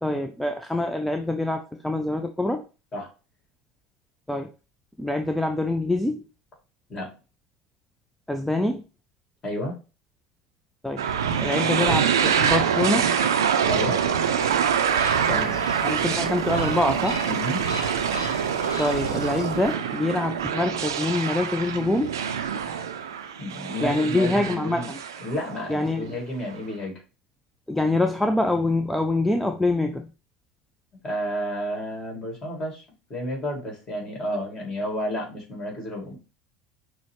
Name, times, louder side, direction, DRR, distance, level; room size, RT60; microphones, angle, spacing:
voice 1, 0.0-2.6 4.3-4.5 5.0-6.3 8.3-8.8 10.8-11.1 11.4-13.1 15.3-15.6 15.8-17.2 18.8-22.2 23.8-25.0 25.7-26.2 27.7-30.1, left 2 dB, 5° left, 6 dB, 0.4 m, -25 dB
voice 2, 9.4-9.8 13.7-14.0 17.2-17.6 23.4-24.9 25.2-26.9 31.0-32.8 33.1-36.2, equal, 30° left, 0 dB, 2.0 m, -31 dB
sound 1, 11.0-25.9, right 7 dB, 75° right, 0.4 m, -25 dB
sound 2, 14.4-19.7, left 1 dB, 85° left, 0.6 m, -38 dB
6.0 x 2.1 x 3.0 m, 0.33 s
figure-of-eight pair, 75°, 2 cm